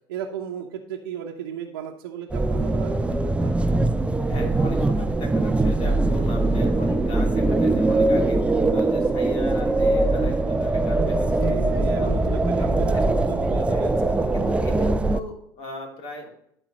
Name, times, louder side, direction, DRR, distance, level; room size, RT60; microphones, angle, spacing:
voice 1, 0.1-3.5 11.3-13.9, right 9 dB, 85° right, -1 dB, 0.9 m, -35 dB
sound 1, 2.3-15.2, right 2 dB, 10° right, 0.5 m, -22 dB
voice 2, 4.3-11.6 12.0-12.1 12.9-13.0 13.7-13.8 14.3-16.3, left 1 dB, 60° left, 0 dB, 3.0 m, -38 dB
12.5 x 4.4 x 4.0 m, 0.71 s
hypercardioid pair, 85°, 12 cm